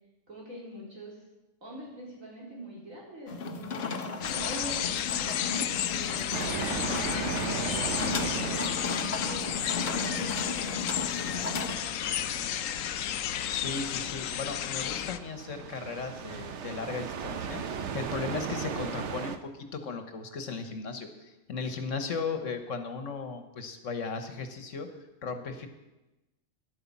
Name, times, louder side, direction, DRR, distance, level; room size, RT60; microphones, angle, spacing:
voice 1, 0.3-1.2 1.6-3.7 4.1-8.6 9.0-12.7 21.8-22.1, equal, 90° right, -4 dB, 4.3 m, -45 dB
sound 1, 3.3-11.7, left 4 dB, 55° left, 1.1 m, -35 dB
sound 2, 4.2-15.2, left 10 dB, 90° left, 1.0 m, -32 dB
sound 3, 6.3-19.4, right 7 dB, 65° right, 1.1 m, -38 dB
voice 2, 13.5-24.9 25.2-25.7, left 4 dB, 70° left, 7 dB, 1.5 m, -36 dB
11.0 x 9.5 x 7.2 m, 1.0 s
omnidirectional pair, 1.3 m